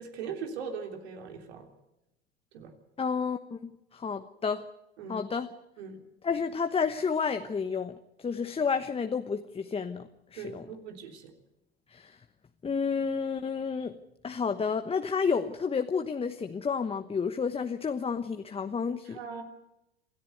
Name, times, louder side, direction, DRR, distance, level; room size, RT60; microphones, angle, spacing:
voice 1, 0.0-1.7 2.5-2.7 5.0-5.2 5.8-6.0 10.4-11.3 19.0-19.4, right 6 dB, 70° right, 5 dB, 3.5 m, -40 dB
voice 2, 3.0-4.6 5.1-5.5 6.2-10.7 11.9-12.2 12.6-13.9 14.2-19.2, left 5 dB, 15° left, 8 dB, 1.1 m, -31 dB
27.0 x 14.0 x 7.9 m, 0.91 s
hypercardioid pair, 90°, 33 cm